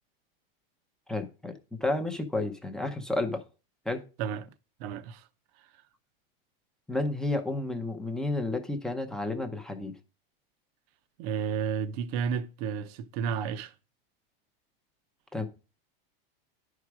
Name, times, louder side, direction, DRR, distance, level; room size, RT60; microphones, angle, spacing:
voice 1, 1.1-3.4 3.9-4.0 6.9-9.9 15.3-15.5, left 2 dB, ahead, 0.6 m, -31 dB
voice 2, 4.8-5.2 11.2-13.7, right 7 dB, 45° right, 0.7 m, -32 dB
10.5 x 4.8 x 6.0 m
supercardioid pair, 165°, 30 cm